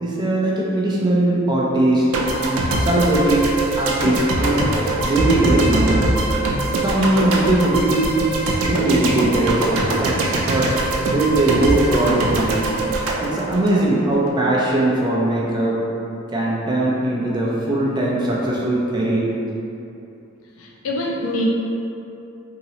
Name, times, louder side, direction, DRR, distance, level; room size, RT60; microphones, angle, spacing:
voice 1, 0.0-3.5 3.8-4.7 5.0-6.0 6.7-8.3 8.6-10.7 11.1-12.6 13.2-15.8 16.3-19.3, right 1 dB, 20° right, -5 dB, 0.4 m, -20 dB
sound 1, 2.1-14.3, right 2 dB, 85° right, 0.4 m, -22 dB
voice 2, 20.6-21.5, left 1 dB, 75° left, -2 dB, 0.5 m, -24 dB
2.9 x 2.8 x 2.8 m, 2.8 s
head